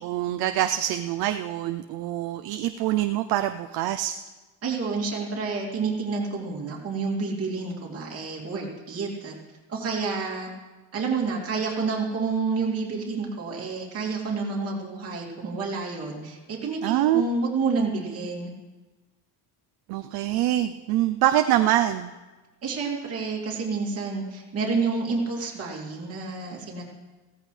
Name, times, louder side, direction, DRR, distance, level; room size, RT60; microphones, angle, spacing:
voice 1, 0.0-4.2 16.8-17.2 19.9-22.1, right 13 dB, 65° right, 8 dB, 0.6 m, -25 dB
voice 2, 4.6-9.3 9.7-10.5 10.9-18.5 22.6-26.8, right 4 dB, 35° right, -3 dB, 2.6 m, -29 dB
16.5 x 14.0 x 3.3 m, 1.2 s
cardioid pair, 165°, 41 cm